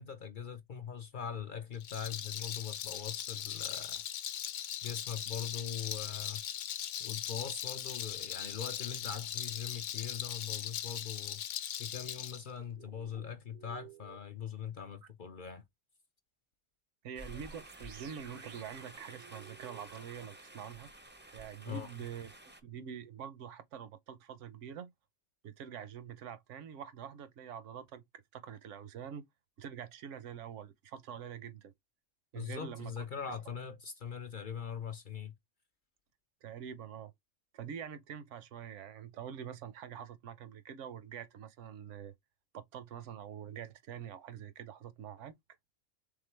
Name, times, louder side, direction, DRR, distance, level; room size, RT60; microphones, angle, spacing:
voice 1, 0.0-4.0 4.8-6.4 7.0-11.4 11.8-15.6 21.6-21.9 32.3-35.3, left 7 dB, 55° left, 0.6 m, -41 dB
Rattle, 1.7-12.4, left 10 dB, 75° left, 0.9 m, -39 dB
sound 1, 12.7-14.2 15.0-15.1 17.3-20.3, right 12 dB, 60° right, 0.6 m, -55 dB
voice 2, 17.0-20.9 21.3-22.3 22.6-24.9 25.4-29.2 29.6-31.7 32.3-32.9 36.4-37.1 37.5-42.1 42.5-45.4, right 8 dB, 75° right, 1.0 m, -45 dB
sound 2, 17.2-22.6, right 1 dB, 15° right, 0.3 m, -52 dB
3.7 x 3.6 x 3.2 m
omnidirectional pair, 1.3 m